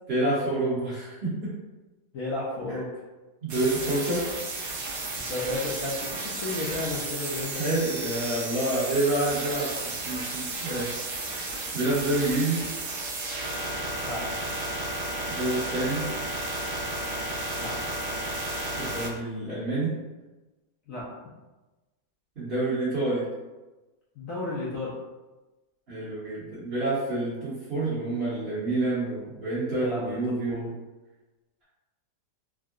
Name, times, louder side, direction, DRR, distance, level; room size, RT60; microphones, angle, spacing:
voice 1, 0.1-1.5 2.7-2.8 3.4-4.2 7.6-11.0 11.7-12.6 15.3-16.0 18.7-19.9 22.4-23.3 25.9-30.7, right 2 dB, 40° right, -10 dB, 1.0 m, -28 dB
voice 2, 2.1-2.9 5.2-7.6 14.0-14.5 17.5-17.7 20.9-21.1 24.2-24.9 29.7-30.0 30.5-30.6, left 2 dB, 65° left, -7 dB, 0.9 m, -33 dB
sound 1, 3.5-19.1, right 2 dB, 65° right, 1.0 m, -33 dB
3.6 x 2.1 x 2.4 m, 1.1 s
omnidirectional pair, 1.8 m